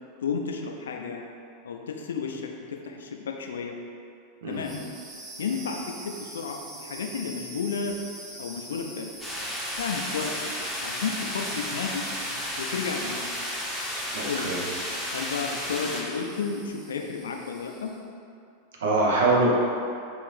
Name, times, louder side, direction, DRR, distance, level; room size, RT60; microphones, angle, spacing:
voice 1, 0.2-1.2 1.6-3.8 4.5-4.8 5.4-5.8 6.0-8.0 8.4-9.1 9.8-10.5 10.8-12.0 12.6-13.2 14.2-14.5 15.1-17.9, left 5 dB, 70° left, 2 dB, 0.3 m, -32 dB
sound 1, 4.5-18.0, right 2 dB, 30° right, 0.9 m, -44 dB
sound 2, 9.2-16.0, equal, 5° left, 0.8 m, -33 dB
voice 2, 14.1-14.6 18.8-19.5, right 2 dB, 65° right, -4 dB, 0.7 m, -23 dB
3.7 x 2.5 x 3.2 m, 2.5 s
figure-of-eight pair, 90°, 0 cm